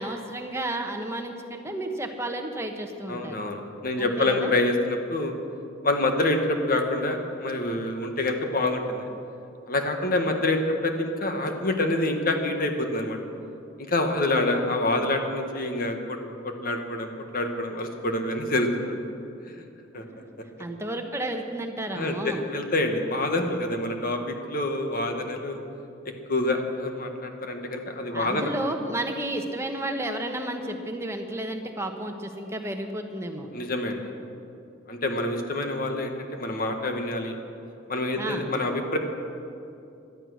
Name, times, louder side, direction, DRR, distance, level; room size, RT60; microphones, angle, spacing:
voice 1, 0.0-3.4 4.0-4.5 14.1-14.5 20.6-22.4 28.1-33.5 38.2-38.5, right 1 dB, 15° right, 4 dB, 1.2 m, -32 dB
voice 2, 3.1-5.3 5.8-9.1 9.7-13.2 13.8-16.2 16.4-19.0 19.5-19.6 19.9-20.0 21.9-25.6 26.3-28.5 33.5-34.0 34.9-37.3 37.9-39.0, left 2 dB, 45° left, 4 dB, 1.5 m, -27 dB
17.5 x 12.0 x 6.4 m, 2.6 s
head